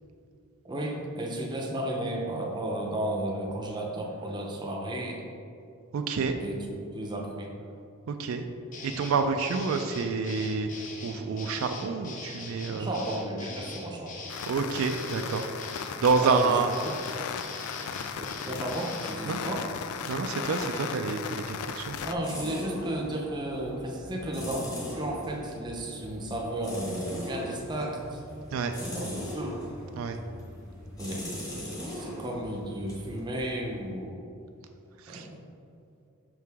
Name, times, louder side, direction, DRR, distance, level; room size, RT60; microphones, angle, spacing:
voice 1, 0.6-5.2 6.4-6.5 6.9-7.5 12.7-14.1 16.2-16.7 18.4-19.7 22.0-28.2 28.8-29.6 31.0-31.3 31.9-34.2 35.1-35.4, right 1 dB, 20° right, 0 dB, 0.6 m, -33 dB
voice 2, 5.9-6.4 8.1-8.5 8.8-10.7 11.0-12.9 14.5-15.5 16.0-16.7 19.3-19.4 20.1-22.0 28.5-28.7 30.0-30.2 35.0-35.3, right 4 dB, 70° right, 6 dB, 0.3 m, -28 dB
sound 1, 8.7-19.2, left 3 dB, 35° left, 0.6 m, -42 dB
sound 2, 14.3-22.2, left 7 dB, 85° left, 0.3 m, -37 dB
sound 3, 21.9-33.9, left 1 dB, 15° left, 1.2 m, -40 dB
5.8 x 4.7 x 3.5 m, 2.6 s
head